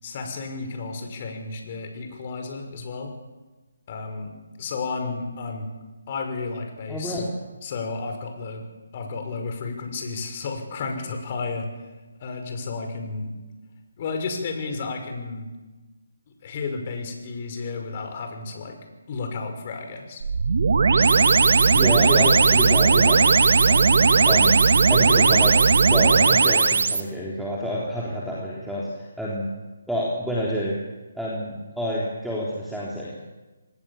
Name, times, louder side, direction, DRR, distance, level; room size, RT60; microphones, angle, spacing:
voice 1, 0.0-3.1 3.9-4.3 4.6-5.7 6.1-7.2 7.6-8.6 8.9-11.7 12.2-13.3 14.0-15.5 16.4-18.8 19.1-20.2, left 4 dB, 40° left, 4 dB, 5.7 m, -32 dB
voice 2, 6.9-7.3 21.7-23.3 23.6-23.9 24.3-24.6 24.9-25.6 25.9-29.5 29.9-30.8 31.2-33.1, equal, ahead, -7 dB, 3.7 m, -28 dB
sound 1, 20.2-27.0, right 4 dB, 65° right, 1.6 m, -17 dB
26.5 x 19.0 x 7.4 m, 1.2 s
figure-of-eight pair, 150°, 0 cm